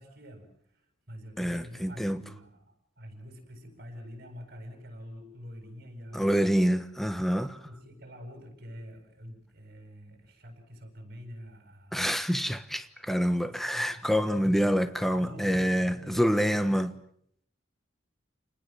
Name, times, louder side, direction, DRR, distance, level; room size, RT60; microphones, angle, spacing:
voice 1, 0.0-6.5 7.6-12.1 13.4-16.8, equal, 50° right, 7.9 m, -46 dB
voice 2, 1.4-2.2 6.1-7.6 11.9-16.9, equal, ahead, 1.2 m, -27 dB
29.0 x 20.0 x 7.7 m
head